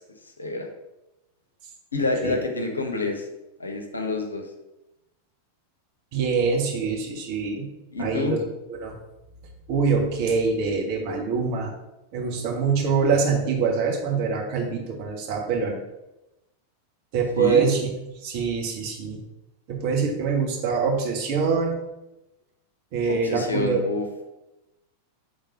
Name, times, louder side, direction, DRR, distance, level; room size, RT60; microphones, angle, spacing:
voice 1, 1.9-3.2 3.6-4.5 7.9-8.4 17.4-17.7 23.1-24.0, left 3 dB, 75° left, 3 dB, 0.8 m, -27 dB
voice 2, 6.1-7.7 8.0-8.4 8.7-8.9 9.7-11.7 12.1-15.7 17.1-17.8 18.2-19.2 19.7-21.8 22.9-23.8, right 5 dB, 45° right, 0 dB, 1.4 m, -24 dB
5.4 x 3.7 x 4.8 m, 0.96 s
figure-of-eight pair, 90°, 0 cm